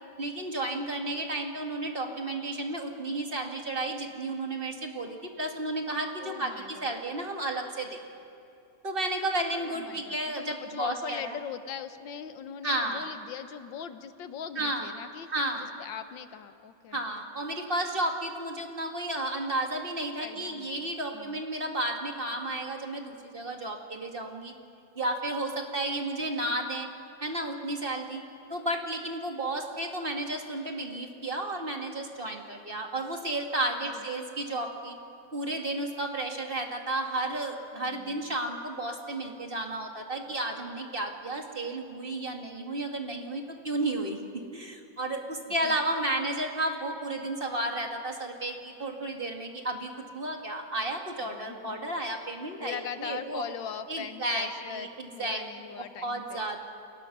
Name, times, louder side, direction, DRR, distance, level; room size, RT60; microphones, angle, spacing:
voice 1, 0.2-8.0 8.8-11.4 12.6-13.1 14.6-14.9 15.3-15.7 16.9-24.5 25.0-26.9 27.2-28.2 28.5-35.0 35.3-53.4 53.9-55.4 56.0-56.6, right 1 dB, 30° right, 2 dB, 2.1 m, -32 dB
voice 2, 6.2-7.1 9.6-15.3 15.8-17.0 20.2-21.4 33.9-34.0 37.7-38.4 45.6-45.8 51.2-51.8 52.6-56.4, left 8 dB, 85° left, 10 dB, 1.8 m, -41 dB
29.5 x 23.0 x 6.1 m, 2.7 s
omnidirectional pair, 2.0 m